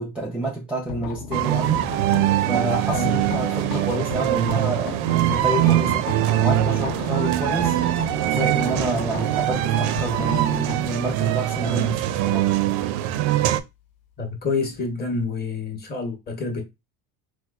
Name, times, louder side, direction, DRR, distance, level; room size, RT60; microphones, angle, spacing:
voice 1, 0.0-1.9 2.5-6.1 6.4-7.8 8.2-12.5, right 1 dB, 5° right, 0.5 m, -29 dB
sound 1, 0.9-14.7, left 6 dB, 80° left, 0.9 m, -35 dB
sound 2, 1.3-13.6, right 14 dB, 75° right, 0.5 m, -22 dB
voice 2, 14.2-16.6, left 3 dB, 25° left, 0.9 m, -27 dB
4.3 x 2.3 x 2.3 m
cardioid pair, 150°, 39 cm